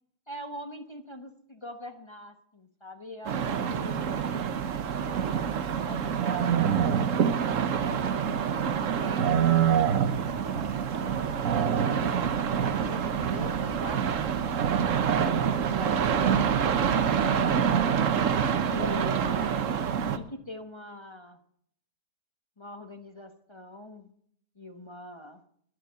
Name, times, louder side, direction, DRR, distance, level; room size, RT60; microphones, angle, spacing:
voice 1, 0.3-4.2 5.0-8.3 8.9-10.7 11.0-14.5 15.4-16.5 17.3-18.1 18.6-19.7 20.1-21.4 22.6-24.1 24.6-25.4, left 1 dB, 20° left, 7 dB, 0.9 m, -43 dB
sound 1, 3.2-20.2, right 8 dB, 60° right, 1.2 m, -26 dB
12.0 x 11.5 x 6.8 m, 0.63 s
omnidirectional pair, 1.7 m